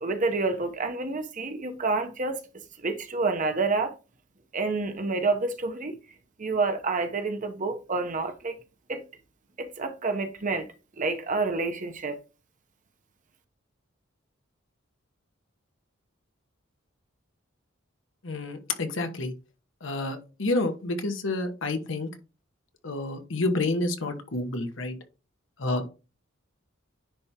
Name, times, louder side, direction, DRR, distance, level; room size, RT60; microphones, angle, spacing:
voice 1, 0.0-2.4 2.8-3.9 4.5-5.9 6.4-8.5 8.9-9.0 9.6-10.7 11.0-12.2, right 3 dB, 40° right, 0.9 m, -28 dB
voice 2, 18.2-19.3 19.8-22.1 22.8-24.9 25.6-25.9, left 2 dB, 65° left, 1.1 m, -29 dB
10.0 x 3.4 x 2.9 m
head